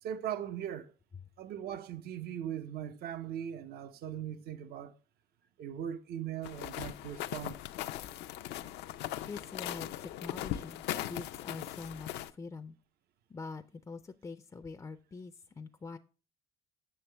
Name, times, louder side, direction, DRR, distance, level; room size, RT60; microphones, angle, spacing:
voice 1, 0.0-0.9 1.4-4.9 5.6-7.6, right 10 dB, 65° right, 0.6 m, -39 dB
sound 1, 6.4-12.3, left 13 dB, 90° left, 0.5 m, -39 dB
voice 2, 9.3-12.8 13.3-16.0, left 4 dB, 20° left, 0.4 m, -45 dB
7.7 x 6.6 x 3.3 m
cardioid pair, 110°, 17 cm